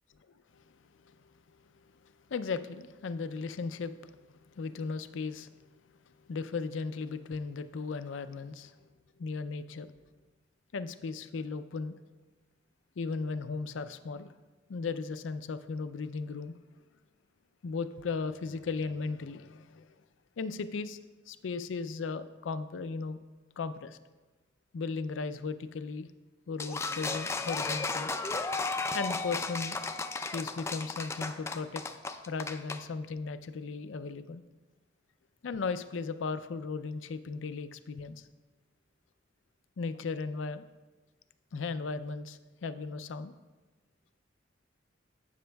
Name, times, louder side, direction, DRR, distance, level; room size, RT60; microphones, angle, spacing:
voice 1, 2.3-3.9 4.5-5.5 6.3-8.7 9.2-9.9 10.7-12.0 13.0-14.3 14.7-16.6 17.6-19.9 20.4-21.0 21.3-23.2 23.6-24.0 24.7-26.1 26.5-28.1 28.9-29.8 30.3-31.8 32.3-34.4 35.4-38.2 39.8-40.6 41.5-43.3, left 4 dB, 80° left, 12 dB, 0.4 m, -36 dB
sound 1, 26.6-32.8, left 3 dB, 15° left, 0.3 m, -34 dB
12.0 x 8.4 x 2.3 m, 1.2 s
head